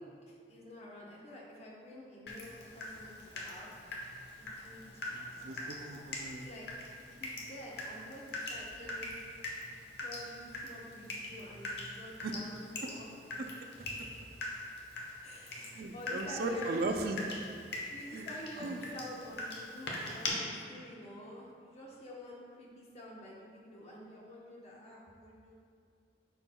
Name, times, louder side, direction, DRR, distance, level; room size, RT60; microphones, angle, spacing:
voice 1, 0.0-3.7 4.4-4.9 6.3-6.7 7.0-9.2 10.0-13.1 13.7-14.2 15.2-16.9 17.9-25.5, left 1 dB, 35° left, -4 dB, 1.1 m, -49 dB
Water tap faucet / Drip, 2.3-20.3, left 2 dB, 65° left, 1.0 m, -43 dB
voice 2, 5.1-6.5 12.2-12.3 13.4-13.5 15.6-17.2 18.1-18.3 18.6-18.8, right 2 dB, 60° right, 4 dB, 0.5 m, -37 dB
9.7 x 4.5 x 2.3 m, 2.3 s
head